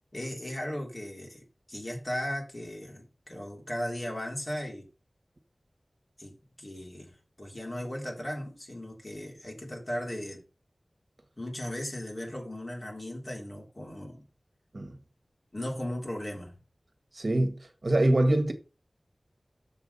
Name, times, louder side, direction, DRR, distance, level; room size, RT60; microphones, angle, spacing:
voice 1, 0.1-4.8 6.2-10.4 11.4-14.3 15.5-16.5, left 1 dB, 35° left, 3.3 m, -37 dB
voice 2, 17.1-17.6 17.8-18.5, right 1 dB, 50° right, 1.8 m, -24 dB
7.4 x 6.2 x 5.6 m
wide cardioid pair, 70°, 0 cm